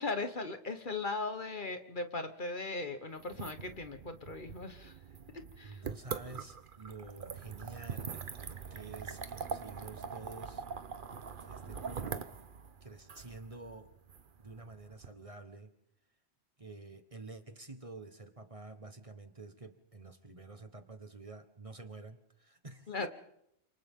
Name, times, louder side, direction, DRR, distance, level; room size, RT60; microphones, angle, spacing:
voice 1, 0.0-5.0 5.6-5.8 22.9-23.1, left 3 dB, 50° left, 8 dB, 1.4 m, -38 dB
sound 1, 3.2-15.1, right 6 dB, 50° right, 1.1 m, -43 dB
voice 2, 5.6-8.2 8.7-10.6 11.4-12.4 12.8-13.9 14.4-15.7 16.6-23.1, right 3 dB, 30° right, 7 dB, 1.4 m, -49 dB
28.5 x 27.0 x 3.7 m, 0.77 s
omnidirectional pair, 1.1 m